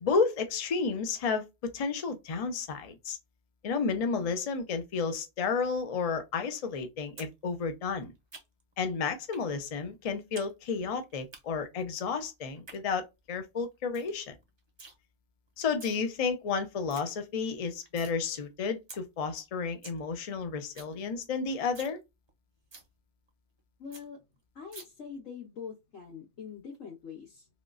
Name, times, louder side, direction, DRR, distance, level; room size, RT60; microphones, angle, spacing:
voice 1, 0.0-3.2 3.6-8.1 8.8-14.3 15.6-22.0, left 5 dB, 45° left, 0.5 m, -32 dB
sound 1, 7.2-7.3 7.6-8.7 9.3-9.5 9.8-10.5 10.8-11.4 12.4-12.8 13.2-13.3 13.6-13.7 13.9-14.1 14.4-14.9 15.6-16.0 16.4-16.5 16.7-17.0 17.4-18.1 18.5-18.6 18.9-19.0 19.4-19.5 19.7-20.0 20.3-20.4 20.6-20.9 21.3-21.4 21.7-22.0 22.3-22.4 22.7-22.9 23.3-23.4 23.6-23.7 23.9-24.0 24.7-24.8, right 3 dB, 30° right, 0.6 m, -48 dB
voice 2, 23.8-24.2 24.5-27.5, left 6 dB, 70° left, 1.8 m, -44 dB
3.6 x 2.3 x 2.4 m
omnidirectional pair, 1.4 m